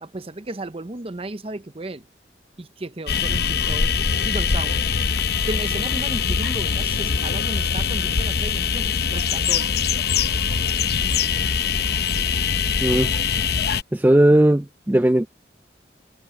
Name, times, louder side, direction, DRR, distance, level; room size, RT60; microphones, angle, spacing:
voice 1, 0.0-2.0 2.6-3.9 4.2-4.8 5.4-9.7, right 2 dB, 30° right, 0.7 m, -34 dB
sound 1, 3.1-13.8, left 6 dB, 60° left, 0.8 m, -22 dB
voice 2, 12.8-13.2 13.9-15.3, right 1 dB, 10° right, 0.3 m, -17 dB
head